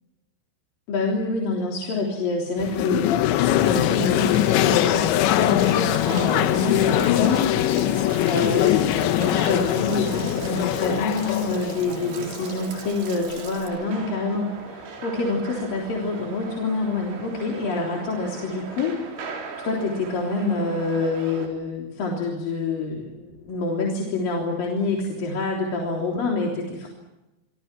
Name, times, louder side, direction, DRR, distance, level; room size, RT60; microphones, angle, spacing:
voice 1, 0.9-7.5 8.2-19.0 19.6-26.9, left 3 dB, 50° left, -1 dB, 4.8 m, -27 dB
sound 1, 2.6-12.6, left 12 dB, 75° left, 3.1 m, -22 dB
Stream / Splash splatter / Trickle dribble, 3.6-13.7, right 7 dB, 55° right, 4.0 m, -44 dB
sound 2, 5.8-21.5, right 4 dB, 80° right, 6.5 m, -39 dB
27.5 x 26.5 x 6.1 m, 1.0 s
omnidirectional pair, 5.6 m